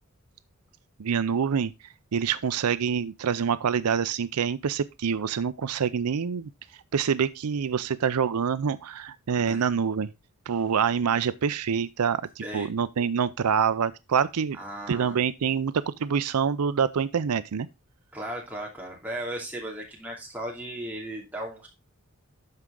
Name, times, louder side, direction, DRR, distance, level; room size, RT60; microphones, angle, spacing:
voice 1, 1.0-1.7 2.1-6.5 6.9-10.1 10.5-14.6 14.9-17.7, right 7 dB, 90° right, 0.5 m, -26 dB
voice 2, 14.5-15.2 18.1-21.7, right 1 dB, 5° right, 2.8 m, -36 dB
12.0 x 4.7 x 3.7 m
head